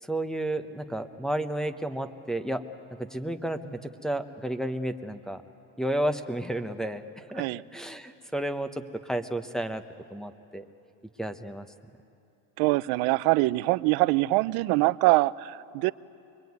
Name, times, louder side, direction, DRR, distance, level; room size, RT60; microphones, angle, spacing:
voice 1, 0.1-2.6 3.0-5.4 5.8-7.4 7.7-9.8 10.1-10.6 11.2-11.7, right 1 dB, ahead, 10 dB, 0.9 m, -32 dB
voice 2, 12.6-15.9, right 21 dB, 80° right, 17 dB, 0.7 m, -24 dB
24.0 x 23.0 x 9.5 m, 2.6 s
cardioid pair, 140°, 37 cm